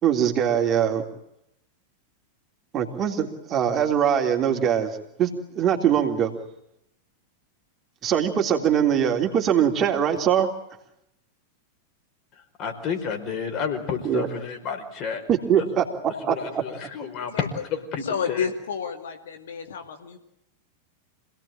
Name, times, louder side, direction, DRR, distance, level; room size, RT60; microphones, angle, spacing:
voice 1, 0.0-1.0 2.7-6.3 8.0-10.5 14.0-14.3 15.3-16.6, right 9 dB, 30° right, 3.3 m, -22 dB
voice 2, 12.6-15.2 15.6-15.7 16.2-18.4, left 6 dB, 35° left, 5.0 m, -31 dB
voice 3, 17.3-17.6 18.0-20.2, left 6 dB, 65° left, 2.3 m, -31 dB
27.0 x 18.0 x 8.9 m
figure-of-eight pair, 90°, 0 cm